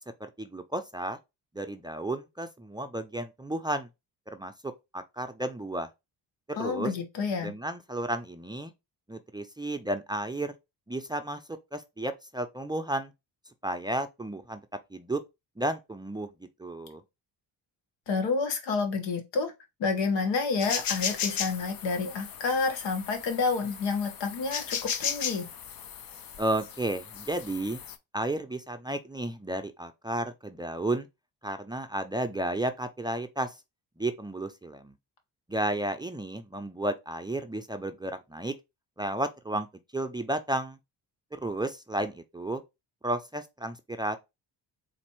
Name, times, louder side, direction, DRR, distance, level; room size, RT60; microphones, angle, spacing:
voice 1, 0.2-1.2 1.5-3.9 4.3-4.5 4.9-5.9 6.5-6.9 7.4-8.7 9.1-10.6 10.9-11.4 11.7-13.1 13.6-14.6 14.9-15.2 15.6-16.3 16.6-17.0 26.4-27.8 28.1-31.1 31.4-33.5 34.0-34.9 35.5-38.5 39.0-39.7 39.9-40.8 41.3-42.6 43.0-44.2, right 1 dB, 10° right, 0.4 m, -32 dB
voice 2, 6.5-7.5 18.1-19.5 19.8-25.5, left 4 dB, 85° left, 1.3 m, -29 dB
sound 1, 20.6-28.0, left 7 dB, 55° left, 0.7 m, -36 dB
4.1 x 2.6 x 4.4 m
cardioid pair, 85°, 43 cm